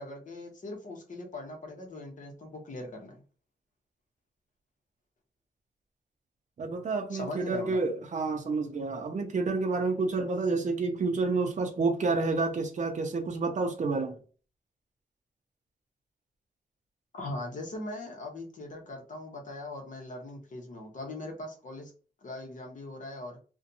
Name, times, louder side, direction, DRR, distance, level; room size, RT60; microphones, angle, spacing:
voice 1, 0.0-3.2 7.1-7.8 17.1-21.9 22.2-23.4, left 2 dB, 55° left, 0.9 m, -40 dB
voice 2, 6.6-14.2, right 3 dB, 50° right, 0.6 m, -29 dB
2.5 x 2.2 x 2.6 m
wide cardioid pair, 125°, 16 cm